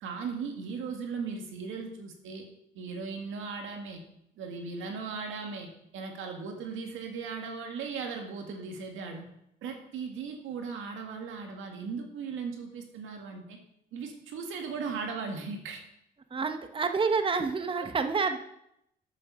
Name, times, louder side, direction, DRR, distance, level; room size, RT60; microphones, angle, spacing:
voice 1, 0.0-2.5 2.7-4.0 4.4-9.3 9.6-13.6 13.9-15.8 17.8-17.9, right 5 dB, 85° right, 3 dB, 1.9 m, -37 dB
voice 2, 16.3-18.4, right 4 dB, 25° right, 7 dB, 0.8 m, -28 dB
8.0 x 7.2 x 6.7 m, 0.78 s
cardioid pair, 90°, 20 cm